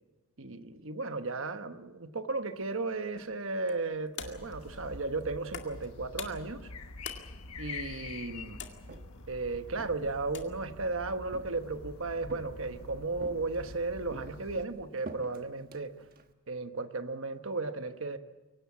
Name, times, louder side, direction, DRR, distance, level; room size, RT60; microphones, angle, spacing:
voice 1, 0.4-6.7 7.6-8.6 9.3-15.9 16.5-18.2, right 3 dB, 60° right, 9 dB, 1.2 m, -35 dB
sound 1, 2.4-12.2, left 7 dB, 55° left, 2.1 m, -49 dB
sound 2, 4.2-14.7, left 3 dB, 80° left, 1.3 m, -46 dB
Walk footsteps, 8.6-9.3 9.7-10.8 11.3-11.9 12.3-12.8 13.2-13.8 14.1-16.3, right 2 dB, 40° right, 1.3 m, -48 dB
23.5 x 18.0 x 8.5 m, 1.2 s
head